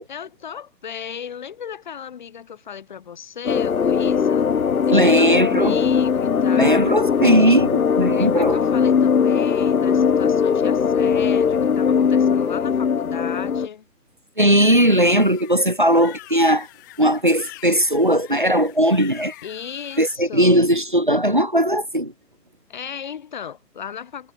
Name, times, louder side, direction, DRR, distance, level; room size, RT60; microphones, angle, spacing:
voice 1, 0.1-4.5 4.9-7.0 8.1-13.9 19.4-20.6 22.7-24.3, left 8 dB, 30° left, 5.6 m, -35 dB
sound 1, 3.5-13.7, left 6 dB, 60° left, 1.1 m, -19 dB
voice 2, 4.9-5.8 6.6-8.6 14.4-16.7 17.0-19.3 20.0-22.1, equal, 30° right, 0.7 m, -18 dB
sound 2, 14.5-20.2, left 19 dB, 10° left, 3.5 m, -43 dB
hypercardioid pair, 180°, 49 cm